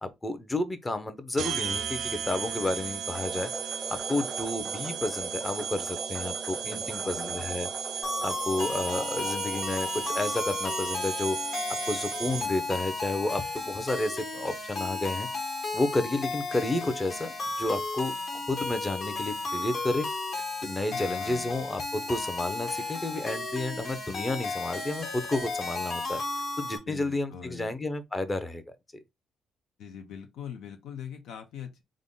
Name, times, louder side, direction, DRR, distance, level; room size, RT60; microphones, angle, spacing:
voice 1, 0.0-7.7 7.9-11.4 11.9-15.3 15.7-20.1 20.6-26.2 26.6-28.6, left 2 dB, 20° left, 0.6 m, -31 dB
sound 1, 1.4-12.8, right 7 dB, 75° right, 0.5 m, -35 dB
sound 2, 3.1-11.4, right 2 dB, 20° right, 0.4 m, -42 dB
voice 2, 6.6-7.4 20.9-21.6 26.9-27.7 29.8-31.8, left 8 dB, 80° left, 0.5 m, -42 dB
sound 3, 8.0-26.8, left 3 dB, 55° left, 1.3 m, -34 dB
3.7 x 2.1 x 3.7 m
cardioid pair, 90°, 0 cm